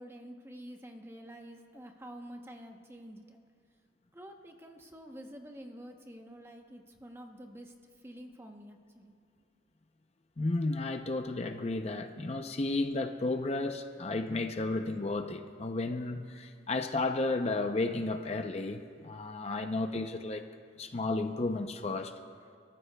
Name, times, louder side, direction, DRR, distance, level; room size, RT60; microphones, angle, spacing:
voice 1, 0.0-3.4 4.1-7.7 8.0-9.2, equal, 15° right, 4 dB, 0.9 m, -48 dB
voice 2, 10.4-20.4 20.8-22.1, left 2 dB, 35° left, 6 dB, 0.6 m, -33 dB
29.5 x 14.0 x 2.3 m, 2.2 s
head